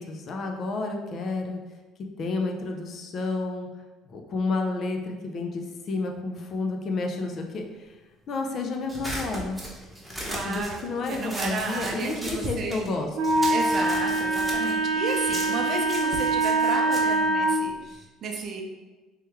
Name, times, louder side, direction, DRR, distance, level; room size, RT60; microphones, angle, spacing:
voice 1, 0.0-1.6 2.2-3.7 4.1-7.9 8.3-9.6 10.4-13.4, left 3 dB, 50° left, 3 dB, 0.5 m, -30 dB
sound 1, 8.9-12.9 13.2-18.0, equal, 5° right, 0.9 m, -38 dB
voice 2, 10.2-10.8 11.1-12.9 13.5-18.6, right 3 dB, 50° right, 1 dB, 0.6 m, -32 dB
Wind instrument woodwind instrument, 13.1-17.5, right 2 dB, 75° right, 0.9 m, -24 dB
3.2 x 3.0 x 3.4 m, 1.2 s
cardioid pair, 105°, 0 cm